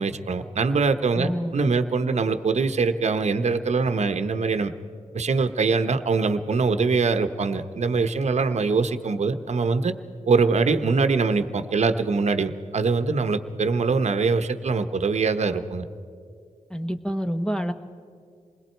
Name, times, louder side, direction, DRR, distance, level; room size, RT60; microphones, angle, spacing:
voice 1, 0.0-4.7 5.1-9.9 10.3-15.8, right 4 dB, 55° right, 9 dB, 1.0 m, -23 dB
voice 2, 1.2-1.5 16.7-17.7, equal, 5° left, 8 dB, 1.1 m, -27 dB
27.5 x 20.5 x 4.6 m, 2.4 s
wide cardioid pair, 85°, 13 cm